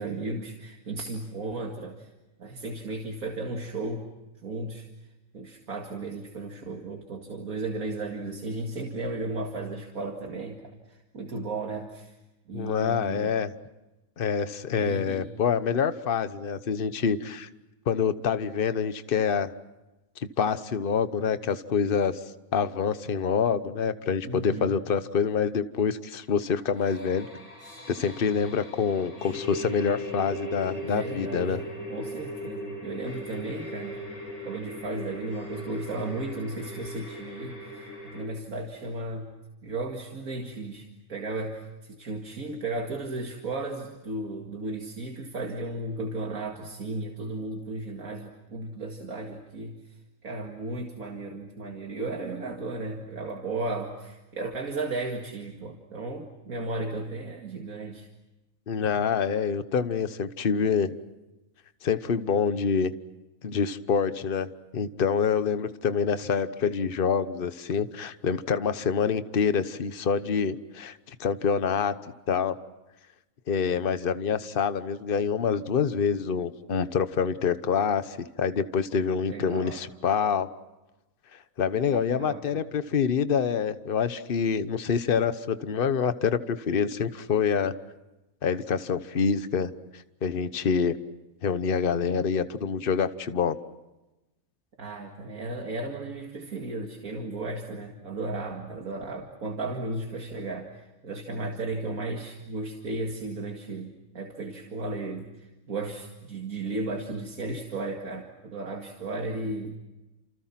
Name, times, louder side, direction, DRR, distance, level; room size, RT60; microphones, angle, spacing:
voice 1, 0.0-2.1 2.4-4.1 4.4-4.9 5.3-12.2 12.5-13.3 14.8-15.3 24.2-24.8 30.9-31.6 31.9-34.0 34.4-39.4 39.6-58.1 79.3-79.8 81.9-82.6 94.8-109.7, right 2 dB, 70° right, 2 dB, 2.5 m, -35 dB
voice 2, 12.5-13.5 14.2-17.5 17.9-19.5 20.2-22.1 22.5-27.3 27.9-31.6 58.7-60.9 61.8-62.9 63.4-64.5 64.7-71.9 72.3-72.6 73.5-80.5 81.6-87.7 88.4-91.0 91.4-93.6, left 6 dB, 40° left, 12 dB, 1.1 m, -26 dB
sound 1, 26.5-38.2, equal, 85° left, 7.1 m, -39 dB
29.5 x 28.0 x 5.9 m, 1.0 s
omnidirectional pair, 1.6 m